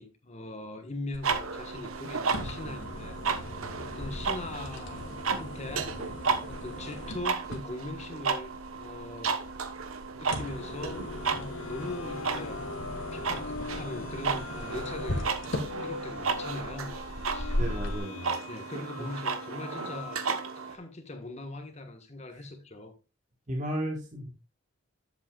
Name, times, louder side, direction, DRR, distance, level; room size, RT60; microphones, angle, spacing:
voice 1, 0.0-3.5 3.8-5.9 6.5-9.4 10.1-12.6 13.0-17.0 17.3-17.8 18.5-20.2 20.5-22.9, left 2 dB, 30° left, 1.4 m, -41 dB
sound 1, 1.1-18.0, left 1 dB, 60° left, 1.7 m, -38 dB
sound 2, 1.2-20.8, right 5 dB, 90° right, 1.0 m, -34 dB
sound 3, 10.3-20.6, left 4 dB, 80° left, 0.8 m, -43 dB
voice 2, 17.6-18.3 19.0-19.1 23.5-24.3, equal, 35° right, 1.4 m, -34 dB
11.0 x 7.8 x 2.4 m
head